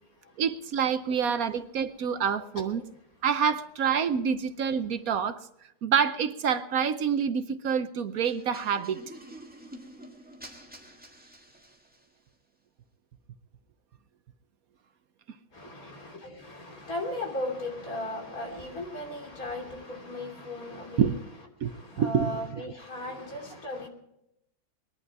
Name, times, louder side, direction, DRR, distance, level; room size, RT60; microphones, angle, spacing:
voice 1, 0.4-2.8 3.2-5.4 5.8-9.0 21.0-21.2 21.6-21.7 22.0-22.4, right 7 dB, 65° right, 1.2 m, -27 dB
sound 1, 8.2-12.2, right 1 dB, 5° right, 1.7 m, -48 dB
voice 2, 15.5-21.2 21.6-23.9, left 1 dB, 60° left, 3.5 m, -36 dB
21.5 x 11.0 x 4.7 m
omnidirectional pair, 1.7 m